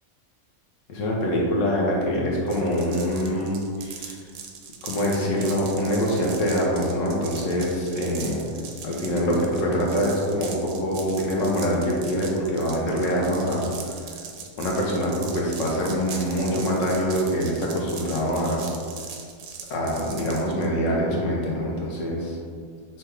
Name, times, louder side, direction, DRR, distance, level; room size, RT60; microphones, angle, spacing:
voice 1, 0.9-4.2 4.8-8.6 8.8-14.0 14.6-18.7 19.7-22.4, equal, 65° left, -2 dB, 1.1 m, -24 dB
sound 1, 2.5-20.7, right 6 dB, 70° right, 0.8 m, -40 dB
5.8 x 2.3 x 3.3 m, 2.1 s
omnidirectional pair, 1.5 m